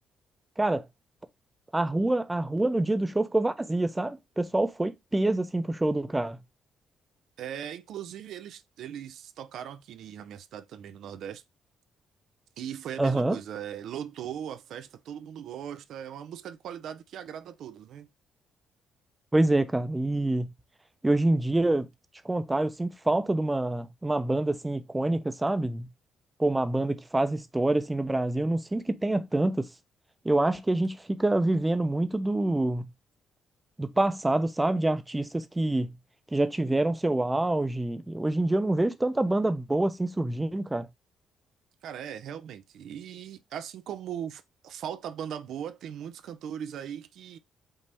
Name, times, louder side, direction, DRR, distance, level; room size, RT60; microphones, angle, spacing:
voice 1, 1.7-6.4 13.0-13.4 19.3-20.5 21.0-21.9 22.2-25.9 26.4-29.7 30.2-32.8 33.8-35.9 36.3-40.9, right 2 dB, 15° right, 0.7 m, -26 dB
voice 2, 7.4-11.4 12.6-18.1 41.8-47.4, right 9 dB, 75° right, 0.5 m, -39 dB
5.3 x 2.8 x 3.5 m
cardioid pair, 90°, 0 cm